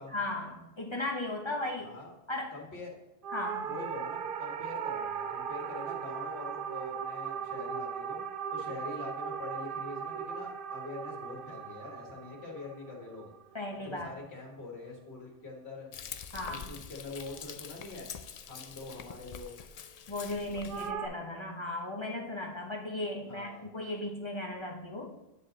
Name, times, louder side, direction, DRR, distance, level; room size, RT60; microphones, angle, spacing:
voice 1, 0.1-1.9 2.3-2.5 3.3-3.7 13.5-14.1 16.3-16.7 20.1-25.2, left 2 dB, 30° left, 0 dB, 0.9 m, -36 dB
voice 2, 2.5-3.0 3.6-8.2 8.5-13.3 13.8-15.9 16.4-18.1 18.5-19.5 23.3-23.7, left 3 dB, 85° left, -1 dB, 1.9 m, -44 dB
sound 1, 3.2-13.7 20.7-21.1, right 7 dB, 65° right, 0.7 m, -38 dB
Frying (food), 15.9-20.9, left 7 dB, 55° left, 0.4 m, -45 dB
9.6 x 4.9 x 3.8 m, 0.97 s
omnidirectional pair, 1.1 m